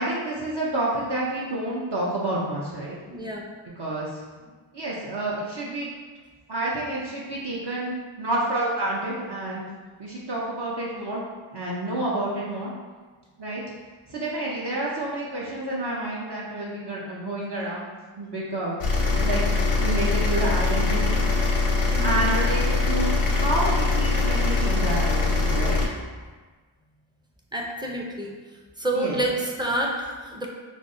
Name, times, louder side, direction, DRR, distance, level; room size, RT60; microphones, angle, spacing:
voice 1, 0.0-3.0 3.8-4.2 4.7-5.9 6.5-9.6 10.0-11.2 11.5-12.7 13.4-13.6 14.1-17.9 18.2-18.8 19.2-19.4 19.8-21.2 22.0-25.9 28.9-29.2, right 1 dB, 55° right, -5 dB, 0.7 m, -29 dB
voice 2, 3.1-3.5 21.9-22.2 27.5-28.3 28.8-30.5, right 1 dB, 10° right, -1 dB, 0.5 m, -28 dB
sound 1, 18.8-25.9, left 3 dB, 90° left, 0.7 m, -22 dB
5.0 x 2.0 x 2.6 m, 1.4 s
wide cardioid pair, 50°, 49 cm